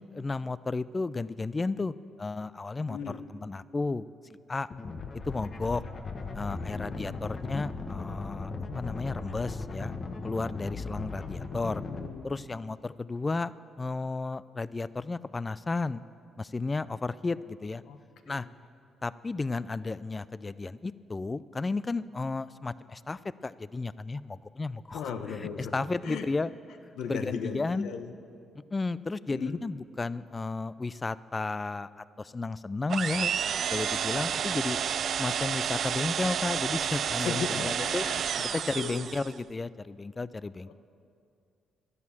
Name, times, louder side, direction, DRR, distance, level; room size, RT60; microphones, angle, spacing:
voice 1, 0.0-3.0 3.3-4.1 4.5-4.7 5.3-5.8 6.3-9.9 10.2-11.8 12.2-16.0 16.4-17.8 18.3-18.5 19.0-25.0 25.3-26.5 26.8-27.9 28.7-31.9 32.2-33.3 33.7-34.8 35.2-38.0 38.5-40.7, left 3 dB, 25° left, 17 dB, 0.4 m, -33 dB
voice 2, 2.9-3.2 6.5-7.0 11.5-12.4 17.9-18.0 18.3-18.5 24.9-25.7 26.0-26.3 27.0-28.1 29.3-29.6 37.2-39.1 40.7-40.8, left 6 dB, 80° left, 7 dB, 1.0 m, -38 dB
sound 1, 4.7-12.1, left 3 dB, 40° left, 1.3 m, -37 dB
sound 2, 32.9-39.4, right 8 dB, 60° right, 0.3 m, -30 dB
13.5 x 11.0 x 7.2 m, 2.4 s
cardioid pair, 90°, 0 cm